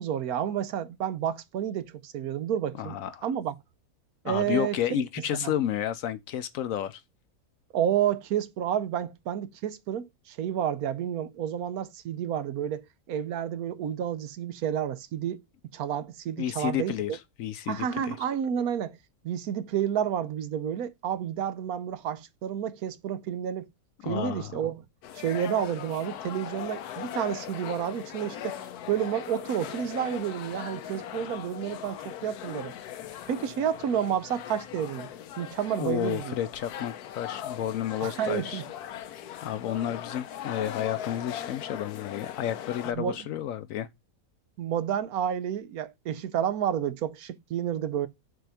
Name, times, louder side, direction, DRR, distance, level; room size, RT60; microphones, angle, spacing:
voice 1, 0.0-3.5 4.2-5.0 5.3-5.5 7.7-12.8 13.1-15.4 15.7-17.2 17.7-19.0 19.2-23.7 24.0-24.8 25.1-28.6 28.9-32.7 33.3-35.1 35.4-36.4 38.0-38.6 42.9-43.2 44.6-48.1, right 9 dB, 75° right, 1.2 m, -30 dB
voice 2, 2.8-3.2 4.2-7.0 16.4-18.2 24.0-24.6 35.8-38.6 39.4-43.9, left 10 dB, 70° left, 0.9 m, -31 dB
sound 1, 25.0-42.9, left 10 dB, 85° left, 1.2 m, -39 dB
8.1 x 3.9 x 3.3 m
omnidirectional pair, 1.6 m